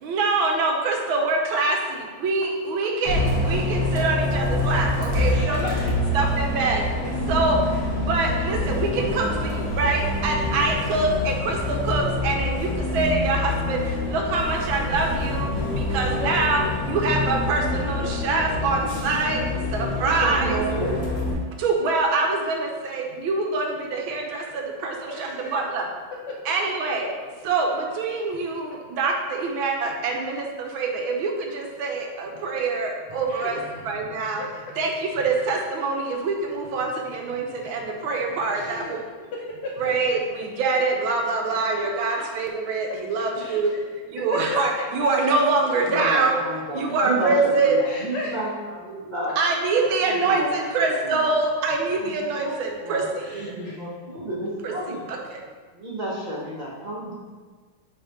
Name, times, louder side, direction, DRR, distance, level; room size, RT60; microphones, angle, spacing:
voice 1, 0.0-5.6 6.1-6.8 7.3-15.5 15.7-19.4 19.7-20.5 21.6-25.9 26.5-27.1 27.4-33.6 33.9-34.4 34.8-38.8 39.8-43.7 44.1-46.4 46.7-47.8 49.4-53.0 53.3-53.4 55.3-55.4, right 3 dB, 80° right, 1 dB, 1.6 m, -25 dB
Bus, 3.1-21.3, left 1 dB, 55° left, 1.6 m, -26 dB
voice 2, 5.2-6.2 10.7-11.0 12.4-12.5 15.9-16.8 24.9-25.8 26.3-26.5 27.0-27.1 33.3-33.9 34.4-34.5 38.5-40.2 42.0-42.3 43.4-44.8 47.8-48.5 53.2-53.9, left 2 dB, 70° left, -1 dB, 1.1 m, -36 dB
voice 3, 20.0-20.9 39.2-39.3 45.7-49.4 50.0-51.2 52.0-53.0 53.3-55.1 55.7-57.1, right 1 dB, 35° right, -5 dB, 0.7 m, -32 dB
5.7 x 3.4 x 5.0 m, 1.5 s
omnidirectional pair, 2.2 m